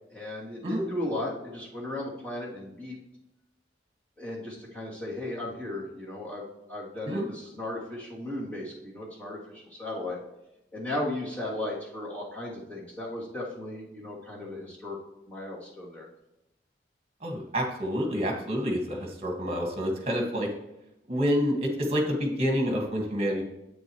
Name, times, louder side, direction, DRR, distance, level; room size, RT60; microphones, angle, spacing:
voice 1, 0.1-3.0 4.2-10.2 10.7-15.0 15.3-16.1, left 1 dB, 10° left, -8 dB, 2.9 m, -36 dB
voice 2, 17.2-20.5 21.1-23.4, equal, 35° right, 1 dB, 1.9 m, -28 dB
10.5 x 8.5 x 3.2 m, 0.90 s
head